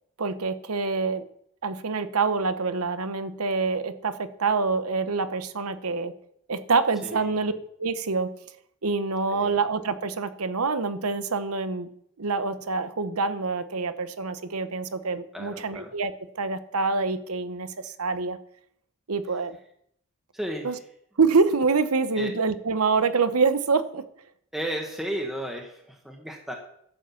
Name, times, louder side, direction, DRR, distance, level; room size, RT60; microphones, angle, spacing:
voice 1, 0.2-1.3 1.6-6.1 6.5-7.5 7.8-8.3 8.8-11.9 12.2-18.4 19.1-19.6 20.6-20.7 21.2-24.0, right 4 dB, 90° right, 12 dB, 0.9 m, -26 dB
voice 2, 7.0-7.6 9.3-9.6 15.3-15.9 20.3-20.8 22.1-22.3 24.5-26.5, right 1 dB, ahead, 1 dB, 1.4 m, -34 dB
11.5 x 7.7 x 7.1 m, 0.71 s
head